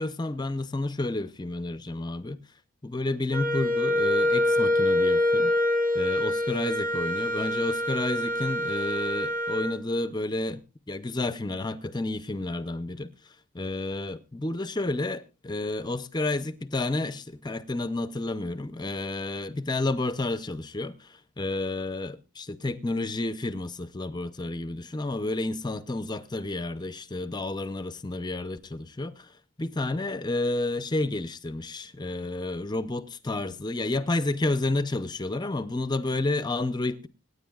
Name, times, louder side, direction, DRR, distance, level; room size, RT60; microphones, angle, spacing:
voice 1, 0.0-2.4 2.8-5.5 5.9-10.6 10.9-13.1 13.5-29.3 29.6-37.1, left 2 dB, 20° left, 0.6 m, -30 dB
Wind instrument woodwind instrument, 3.3-9.8, left 1 dB, 40° right, 1.4 m, -25 dB
25.5 x 9.8 x 2.4 m
head